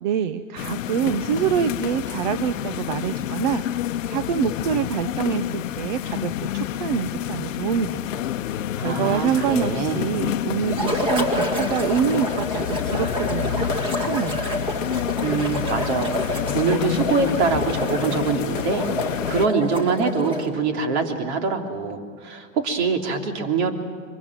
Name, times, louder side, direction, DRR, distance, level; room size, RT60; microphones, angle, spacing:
voice 1, 0.0-8.2 8.5-14.4, right 8 dB, 35° right, 12 dB, 0.6 m, -26 dB
sound 1, 0.6-19.5, left 11 dB, 70° left, 0.9 m, -28 dB
voice 2, 8.8-10.0 15.2-23.7, right 4 dB, 50° right, 4 dB, 3.2 m, -24 dB
sound 2, 10.7-20.6, equal, 10° right, 1.9 m, -28 dB
25.0 x 23.5 x 7.6 m, 2.1 s
hypercardioid pair, 155°, 41 cm